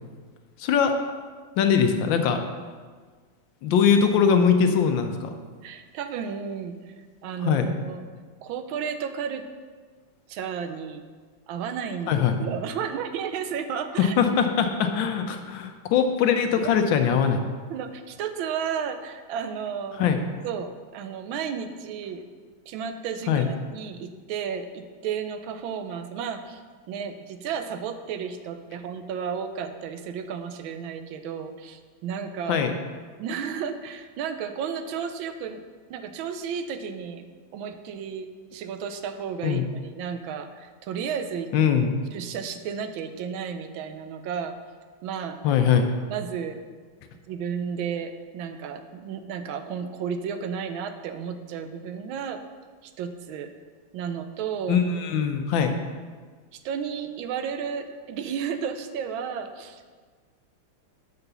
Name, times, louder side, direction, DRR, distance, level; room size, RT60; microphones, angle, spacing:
voice 1, 0.6-1.0 1.6-2.4 3.6-5.3 7.4-7.7 12.1-12.4 14.0-17.4 20.0-20.2 23.3-23.5 32.5-32.7 39.4-39.6 41.5-42.0 45.4-45.9 54.7-55.7, left 7 dB, 75° left, 6 dB, 1.4 m, -21 dB
voice 2, 5.6-6.9 7.2-8.0 8.4-9.4 10.3-11.0 11.5-14.2 17.7-20.1 20.4-22.2 22.7-26.6 26.9-32.6 33.2-35.6 35.9-37.2 37.5-38.3 38.5-41.5 42.1-44.6 45.0-45.4 46.1-46.6 47.3-52.4 52.8-53.5 53.9-54.8 56.5-59.8, right 7 dB, 85° right, 8 dB, 1.4 m, -33 dB
6.9 x 4.9 x 6.7 m, 1.5 s
omnidirectional pair, 2.2 m